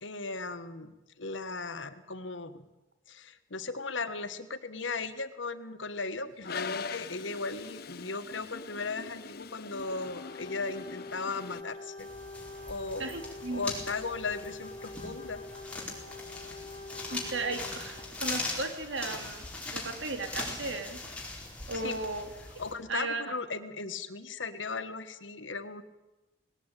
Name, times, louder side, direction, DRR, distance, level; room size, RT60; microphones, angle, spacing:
voice 1, 0.0-0.9 1.2-2.6 3.1-12.1 12.7-13.1 13.5-15.4 21.7-22.0 22.6-25.8, left 4 dB, 80° left, 10 dB, 1.6 m, -37 dB
Toilet flush, 6.4-11.6, left 5 dB, 55° left, 0.8 m, -42 dB
sound 1, 9.8-18.2, left 3 dB, 30° left, 4.1 m, -45 dB
sound 2, 12.0-22.7, left 2 dB, 5° left, 4.5 m, -40 dB
voice 2, 13.0-13.7 17.1-19.5 19.7-21.0 21.7-22.3 22.9-23.2, right 3 dB, 75° right, 6 dB, 3.0 m, -35 dB
19.5 x 18.0 x 9.1 m, 1.0 s
head